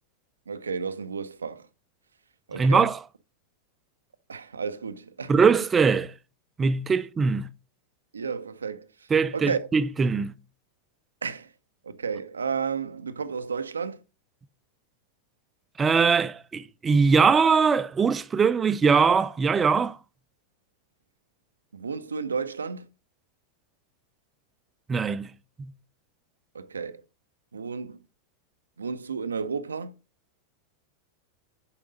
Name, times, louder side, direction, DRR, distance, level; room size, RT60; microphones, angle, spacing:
voice 1, 0.5-1.7 2.5-2.9 4.3-5.3 8.1-8.9 9.3-9.7 11.2-11.5 11.8-14.0 21.7-22.9 26.5-27.0 27.5-28.0 28.8-29.9, right 5 dB, 75° right, 0.5 m, -32 dB
voice 2, 2.6-3.0 5.3-6.1 6.6-7.5 9.1-10.3 15.8-20.0 24.9-25.3 25.6-25.7, right 5 dB, 20° right, 0.4 m, -21 dB
6.8 x 5.2 x 5.1 m
figure-of-eight pair, 90°, 0 cm